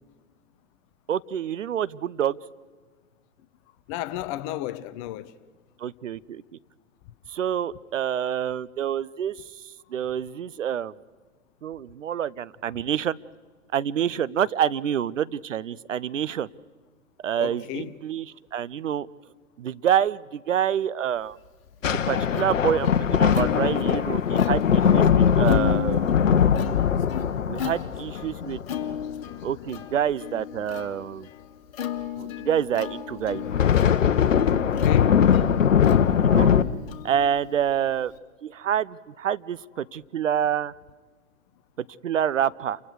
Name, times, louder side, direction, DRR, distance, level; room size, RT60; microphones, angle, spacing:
voice 1, 1.1-2.4 5.8-6.4 7.3-9.4 9.9-10.9 11.6-13.2 13.7-16.5 17.2-19.1 19.6-21.4 21.9-24.6 24.9-26.1 27.5-28.6 29.4-31.3 32.2-33.5 36.2-36.5 37.0-38.1 38.4-40.7 42.0-42.8, right 9 dB, 70° right, 0.7 m, -27 dB
voice 2, 3.9-5.3 17.4-17.9 34.7-35.3, left 13 dB, 25° left, 0.7 m, -33 dB
Plucked string instrument, 21.4-38.2, left 10 dB, 45° left, 2.4 m, -36 dB
sound 1, 21.8-29.5 33.3-36.6, left 8 dB, 70° left, 1.0 m, -21 dB
29.0 x 24.0 x 4.8 m
figure-of-eight pair, 120°, 40 cm